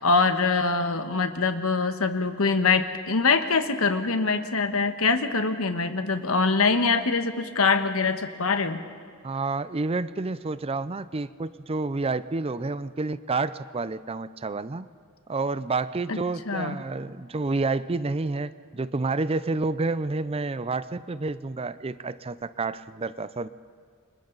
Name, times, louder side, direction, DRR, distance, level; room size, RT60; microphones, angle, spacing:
voice 1, 0.0-8.8 16.1-16.2 16.5-16.8, left 4 dB, 80° left, 8 dB, 1.3 m, -24 dB
voice 2, 9.2-14.9 15.3-23.5, right 3 dB, 30° right, 15 dB, 0.5 m, -29 dB
29.0 x 25.5 x 4.0 m, 2.3 s
head